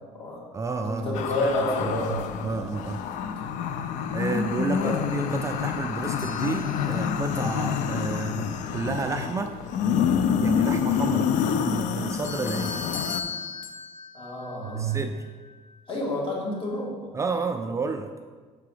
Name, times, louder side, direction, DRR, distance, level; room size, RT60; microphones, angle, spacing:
voice 1, 0.0-0.4 0.8-2.2 2.4-2.7 4.7-5.0 14.1-15.0 15.9-17.1, left 1 dB, 45° left, -3 dB, 2.2 m, -29 dB
voice 2, 0.5-1.5 1.8-1.9 2.4-3.0 4.1-9.6 10.4-12.8 14.7-15.2 17.1-18.1, right 4 dB, 25° right, 6 dB, 0.3 m, -31 dB
sound 1, 1.1-13.2, left 7 dB, 70° left, 0.4 m, -27 dB
sound 2, 6.0-7.4 12.2-15.5, left 5 dB, 85° left, 1.0 m, -38 dB
6.7 x 4.7 x 4.9 m, 1.5 s
cardioid pair, 120°, 13 cm